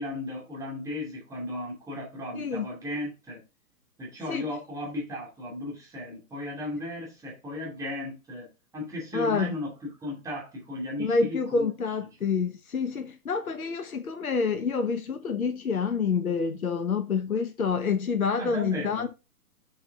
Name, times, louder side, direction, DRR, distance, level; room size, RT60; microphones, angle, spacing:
voice 1, 0.0-3.4 4.0-8.5 8.7-11.7 18.4-19.1, left 1 dB, 5° right, 2.5 m, -35 dB
voice 2, 2.3-2.7 4.3-4.4 9.1-9.6 11.0-19.1, left 5 dB, 70° left, 1.1 m, -27 dB
6.9 x 5.6 x 3.5 m
figure-of-eight pair, 125°, 45 cm